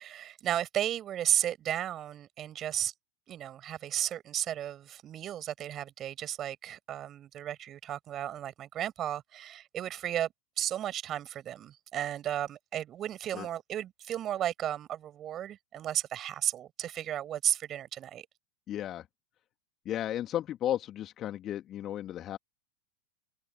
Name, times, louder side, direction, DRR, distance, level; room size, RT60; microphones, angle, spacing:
voice 1, 0.0-2.9 3.3-10.3 10.6-18.3, right 11 dB, 30° right, 7.4 m, -34 dB
voice 2, 18.7-19.1 19.8-22.4, left 12 dB, 30° left, 2.5 m, -34 dB
figure-of-eight pair, 90°, 0 cm